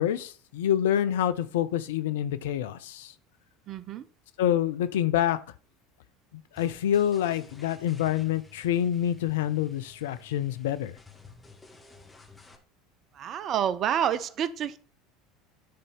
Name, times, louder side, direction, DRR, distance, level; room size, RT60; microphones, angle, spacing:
voice 1, 0.0-3.1 4.4-5.4 6.3-11.0, left 11 dB, 70° left, 0.6 m, -27 dB
voice 2, 3.7-4.1 13.1-14.8, right 9 dB, 45° right, 0.6 m, -28 dB
sound 1, 6.6-12.6, left 4 dB, 15° left, 1.9 m, -53 dB
10.5 x 4.1 x 5.4 m
figure-of-eight pair, 70°, 0 cm